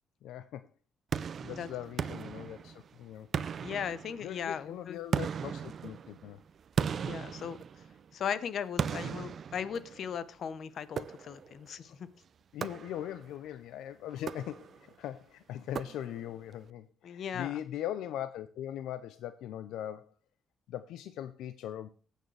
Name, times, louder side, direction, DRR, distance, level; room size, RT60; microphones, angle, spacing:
voice 1, 0.2-0.6 1.4-3.3 4.2-6.4 11.9-12.0 12.5-14.7 15.0-20.1 20.7-21.9, left 11 dB, 85° left, 12 dB, 0.5 m, -40 dB
sound 1, 1.1-2.9 3.3-4.5 5.1-8.1 8.8-10.2 11.0-11.6 12.6-13.3 14.1-14.9 15.7-16.4, right 7 dB, 55° right, 0.4 m, -37 dB
voice 2, 3.6-5.0 7.0-7.6 8.1-12.1 17.0-17.5, left 8 dB, 60° left, 15 dB, 0.8 m, -37 dB
18.0 x 6.5 x 3.2 m, 0.39 s
cardioid pair, 90°, 0 cm